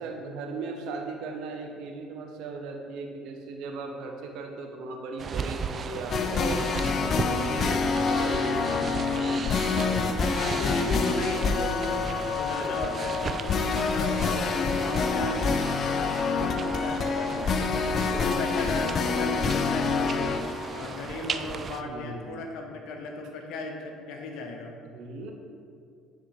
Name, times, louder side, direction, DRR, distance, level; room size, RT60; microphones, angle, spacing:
voice 1, 0.0-9.1 9.8-10.2 10.5-10.7 12.6-13.0 17.4-18.4 21.8-22.6 24.9-25.3, right 3 dB, 70° right, 3 dB, 0.8 m, -38 dB
sound 1, 5.2-21.8, right 5 dB, 40° right, 0.3 m, -35 dB
sound 2, 6.1-21.3, left 5 dB, 50° left, 0.4 m, -27 dB
voice 2, 10.3-17.7 18.0-20.3 20.7-24.7, left 3 dB, 70° left, 3 dB, 0.9 m, -35 dB
9.4 x 4.1 x 3.2 m, 2.3 s
hypercardioid pair, 65°, 0 cm